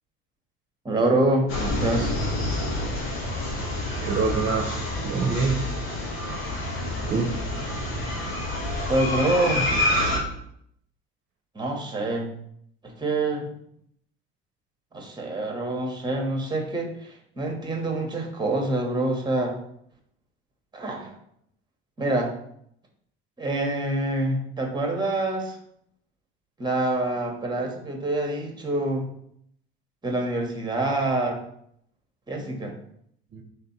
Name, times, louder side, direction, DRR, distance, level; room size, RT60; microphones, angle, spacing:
voice 1, 0.8-2.1 8.9-9.7 11.5-12.3 12.8-13.5 14.9-19.5 20.7-21.1 22.0-22.3 23.4-25.6 26.6-29.1 30.0-31.4 32.3-32.7, right 2 dB, 15° right, 3 dB, 1.0 m, -26 dB
sound 1, 1.5-10.2, left 1 dB, 80° left, 1.2 m, -28 dB
voice 2, 4.0-5.6 7.1-7.3 33.3-33.4, right 4 dB, 40° right, 0 dB, 0.8 m, -26 dB
3.3 x 2.6 x 4.5 m, 0.70 s
hypercardioid pair, 65°, 30 cm